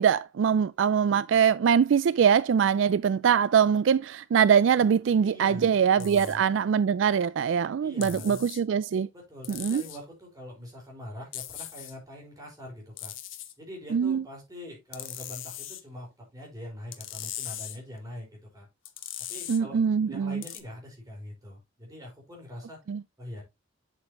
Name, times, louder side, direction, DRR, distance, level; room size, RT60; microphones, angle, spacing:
voice 1, 0.0-9.1 9.5-9.8 13.9-14.2 19.5-20.4 22.9-23.0, right 7 dB, 70° right, 0.3 m, -23 dB
voice 2, 5.2-6.4 7.8-8.4 9.1-13.1 13.6-18.7 19.3-22.8 23.2-23.4, left 1 dB, 20° right, 4.6 m, -43 dB
sound 1, 6.0-6.4 8.0-8.6 9.4-10.0 11.3-11.9 13.0-13.5 14.9-15.8 16.9-17.8 18.8-19.6 20.4-20.6, left 12 dB, 85° left, 1.0 m, -39 dB
7.8 x 7.5 x 2.9 m
head